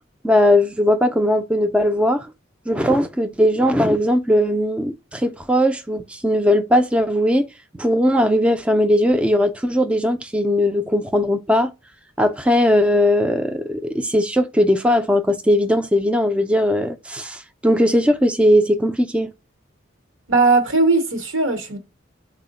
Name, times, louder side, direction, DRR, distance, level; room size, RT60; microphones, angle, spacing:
voice 1, 0.2-2.3 2.7-7.5 7.8-11.7 12.2-19.3, equal, 5° right, 0.3 m, -18 dB
voice 2, 20.3-21.8, right 3 dB, 80° right, 1.0 m, -18 dB
3.8 x 2.1 x 3.9 m
head